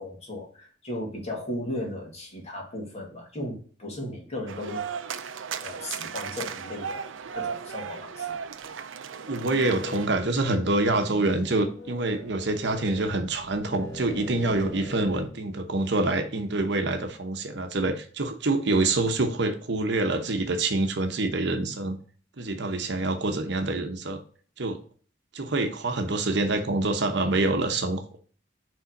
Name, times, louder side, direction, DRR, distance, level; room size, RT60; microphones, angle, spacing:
voice 1, 0.0-4.9 5.6-7.1 7.3-8.4, left 1 dB, 35° left, -1 dB, 2.1 m, -36 dB
sound 1, 4.5-10.1, right 7 dB, 75° right, 0.5 m, -36 dB
sound 2, 9.1-15.3, equal, 15° left, 1.5 m, -42 dB
voice 2, 9.3-22.0 22.4-24.2 24.6-24.8 25.3-28.2, right 2 dB, 60° right, 6 dB, 0.9 m, -26 dB
5.6 x 3.7 x 5.0 m, 0.43 s
head